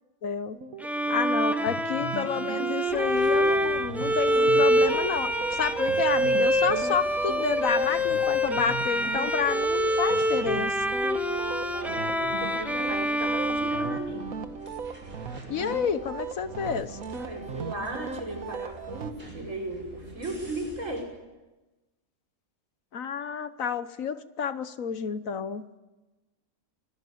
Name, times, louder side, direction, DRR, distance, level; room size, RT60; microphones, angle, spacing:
voice 1, 0.2-0.6 1.1-10.8 15.5-17.0 22.9-25.6, left 7 dB, 70° left, 12 dB, 1.5 m, -30 dB
sound 1, 0.5-19.1, right 5 dB, 80° right, 1.8 m, -38 dB
Bowed string instrument, 0.8-14.7, equal, ahead, 1.5 m, -26 dB
sound 2, 2.9-21.0, right 1 dB, 40° right, 7.1 m, -48 dB
voice 2, 11.7-14.3 17.1-21.1, right 1 dB, 65° right, 1 dB, 5.1 m, -36 dB
25.0 x 18.5 x 9.3 m, 1.1 s
omnidirectional pair, 1.5 m